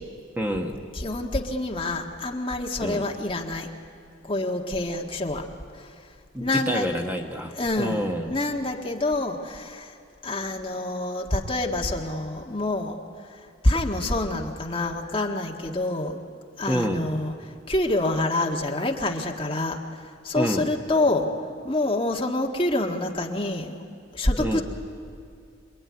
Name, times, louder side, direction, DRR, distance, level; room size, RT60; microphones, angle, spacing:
voice 1, 0.4-0.8 2.8-3.1 6.3-8.3 16.7-17.1 20.3-20.7 24.4-24.6, equal, 10° right, 2 dB, 1.1 m, -27 dB
voice 2, 0.9-3.7 4.3-5.4 5.8-5.9 6.4-6.9 7.5-9.9 10.2-13.0 13.6-16.2 16.6-17.3 17.7-19.8 20.2-21.3 21.6-23.8 24.1-24.6, left 2 dB, 25° left, 1 dB, 1.6 m, -26 dB
26.5 x 22.5 x 9.7 m, 2.3 s
head